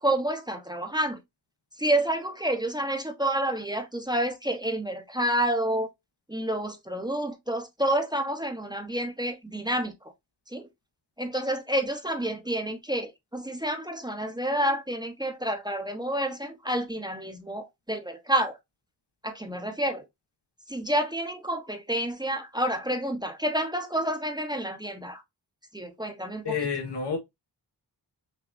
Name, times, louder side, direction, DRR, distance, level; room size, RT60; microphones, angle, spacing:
voice 1, 0.0-1.2 1.8-5.9 6.3-9.9 10.5-10.7 11.2-18.6 19.2-20.0 20.7-25.2 25.7-26.6, right 1 dB, 10° right, 0.8 m, -29 dB
voice 2, 26.4-27.2, left 5 dB, 75° left, 1.5 m, -29 dB
5.9 x 2.6 x 2.4 m
wide cardioid pair, 95°, 41 cm